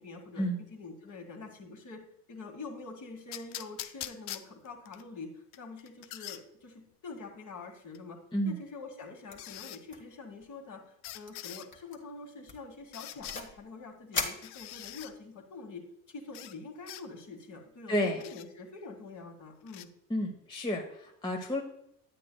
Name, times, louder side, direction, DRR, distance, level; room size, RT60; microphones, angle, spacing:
voice 1, 0.0-2.0 2.3-8.2 8.5-19.9, left 3 dB, 40° left, 2 dB, 1.9 m, -46 dB
sound 1, 3.3-5.0 5.5-6.4 7.9-8.0 9.4-9.8 11.0-11.7 12.9-13.4 14.4-15.1 16.3-16.6 16.9-17.0 18.2-18.5 19.7-19.9, left 13 dB, 70° left, 0.6 m, -43 dB
sound 2, 9.3-9.6 9.9-10.2 10.4-10.5 11.0-11.3 11.7-12.0 12.5-13.6 14.1-15.1, left 4 dB, 25° left, 1.5 m, -38 dB
voice 2, 17.9-18.2 20.1-21.6, equal, 10° left, 0 dB, 1.0 m, -31 dB
9.7 x 8.5 x 2.3 m, 0.76 s
supercardioid pair, 90°, 43 cm